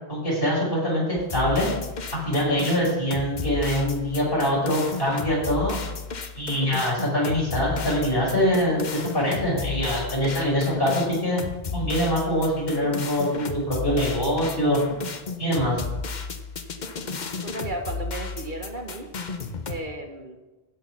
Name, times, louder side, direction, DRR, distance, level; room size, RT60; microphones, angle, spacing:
voice 1, 0.1-1.7 2.1-5.8 6.3-11.4 11.7-14.8 15.4-15.8, equal, 65° left, -4 dB, 5.5 m, -24 dB
sound 1, 1.2-19.8, left 4 dB, 50° left, 1.0 m, -33 dB
voice 2, 17.4-19.1 19.7-20.4, right 2 dB, 50° right, 3 dB, 1.5 m, -34 dB
16.0 x 6.4 x 5.9 m, 1.1 s
omnidirectional pair, 1.0 m